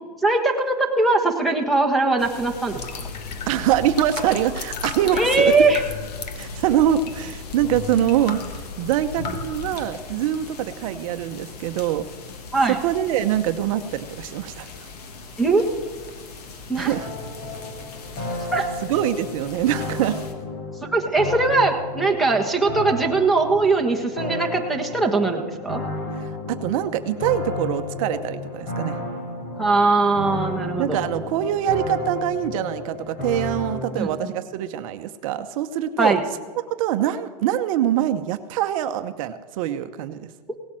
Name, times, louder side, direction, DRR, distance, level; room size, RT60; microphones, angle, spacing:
voice 1, 0.2-2.8 5.1-5.8 12.5-12.8 15.4-15.6 16.7-16.9 18.5-18.6 20.9-25.8 29.6-31.0 33.9-34.3 36.0-36.2 40.5-40.6, right 3 dB, ahead, 5 dB, 1.5 m, -20 dB
sound 1, 2.2-20.3, left 4 dB, 70° left, 2.3 m, -41 dB
sound 2, 2.7-9.8, left 5 dB, 85° left, 1.6 m, -34 dB
voice 2, 3.5-5.5 6.4-8.4 8.8-12.0 12.7-14.7 16.8-17.1 18.8-20.2 26.2-29.0 30.8-36.2 36.8-40.3, right 11 dB, 55° right, 9 dB, 0.8 m, -24 dB
sound 3, 16.9-34.0, left 2 dB, 40° left, 4.1 m, -32 dB
17.5 x 8.8 x 7.6 m, 1.5 s
supercardioid pair, 145°, 21 cm